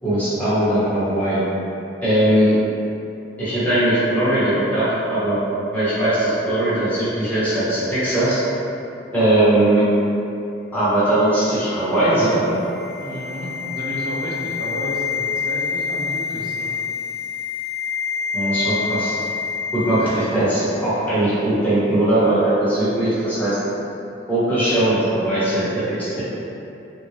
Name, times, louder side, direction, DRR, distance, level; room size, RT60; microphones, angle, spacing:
voice 1, 0.0-1.4 2.0-2.5 3.4-5.4 5.7-8.4 9.1-9.8 10.7-12.5 18.3-19.1 19.7-23.6 24.3-26.2, right 1 dB, 10° left, -13 dB, 1.2 m, -19 dB
sound 1, 11.2-20.5 20.7-20.9, left 6 dB, 40° left, 0.5 m, -28 dB
voice 2, 12.9-16.7, equal, 55° right, -4 dB, 0.6 m, -31 dB
3.7 x 2.5 x 3.2 m, 2.8 s
head